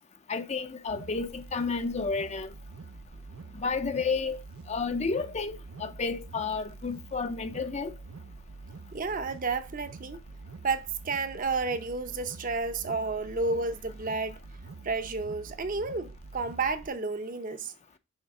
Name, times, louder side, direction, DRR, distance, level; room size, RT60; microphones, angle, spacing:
voice 1, 0.3-2.5 3.5-4.4 4.7-7.9, left 4 dB, 30° left, 0.5 m, -31 dB
sound 1, 0.9-16.9, right 3 dB, 85° right, 0.6 m, -46 dB
voice 2, 8.9-10.2 10.6-14.4 14.8-17.7, right 3 dB, 40° right, 0.7 m, -31 dB
6.5 x 3.9 x 5.8 m
head